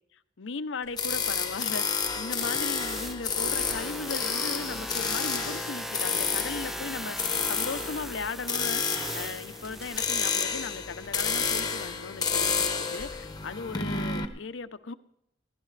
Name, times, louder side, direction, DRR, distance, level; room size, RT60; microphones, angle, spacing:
voice 1, 0.4-14.9, left 4 dB, 85° left, 0.7 m, -37 dB
sound 1, 0.8-1.4 3.5-4.2 7.2-7.9 9.6-10.3 11.0-11.4 11.8-11.9 12.9-13.6, right 1 dB, 60° right, 5.3 m, -51 dB
sound 2, 1.0-14.2, left 5 dB, 20° left, 1.1 m, -30 dB
sound 3, 2.4-10.1, equal, ahead, 0.5 m, -38 dB
22.5 x 16.0 x 3.3 m
head